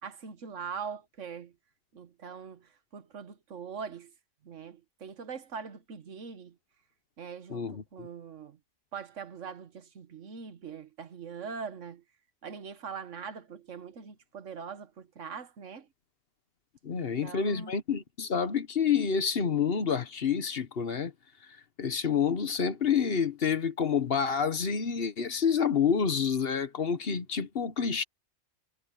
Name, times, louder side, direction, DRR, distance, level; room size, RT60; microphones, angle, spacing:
voice 1, 0.0-1.5 1.9-4.1 4.4-6.6 7.2-8.6 8.9-12.0 12.4-15.9 16.9-17.7, right 6 dB, 75° right, 1.5 m, -42 dB
voice 2, 7.5-8.1 16.8-21.1 21.8-28.0, left 7 dB, 55° left, 1.2 m, -28 dB
omnidirectional pair, 1.3 m